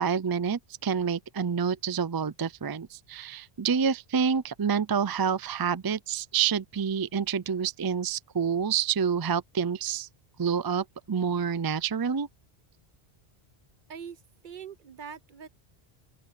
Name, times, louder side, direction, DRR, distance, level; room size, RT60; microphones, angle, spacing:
voice 1, 0.0-10.1 10.4-12.3, right 7 dB, 35° right, 0.3 m, -28 dB
voice 2, 13.9-15.5, right 7 dB, 55° right, 0.9 m, -43 dB
open air
omnidirectional pair, 1.0 m